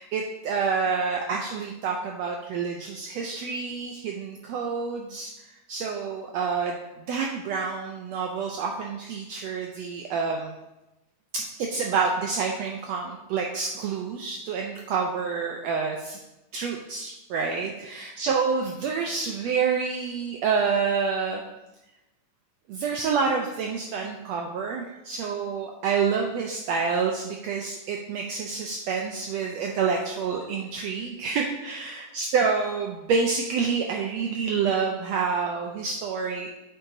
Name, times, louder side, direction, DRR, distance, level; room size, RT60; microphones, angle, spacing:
voice 1, 0.0-5.3 5.7-6.8 7.0-10.5 11.3-16.2 16.5-21.4 22.7-36.5, right 5 dB, 80° right, 1 dB, 1.5 m, -28 dB
8.5 x 7.7 x 2.7 m, 0.98 s
omnidirectional pair, 3.6 m